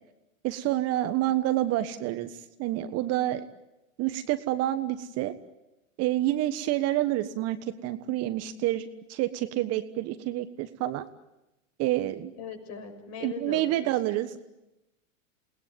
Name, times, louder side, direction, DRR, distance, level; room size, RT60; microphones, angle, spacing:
voice 1, 0.4-3.5 4.0-5.3 6.0-11.0 11.8-12.3 13.2-14.4, right 14 dB, 40° right, 10 dB, 1.4 m, -28 dB
voice 2, 12.4-13.9, left 6 dB, 40° left, 6 dB, 6.6 m, -40 dB
29.0 x 20.0 x 9.3 m, 0.96 s
hypercardioid pair, 95°, 40 cm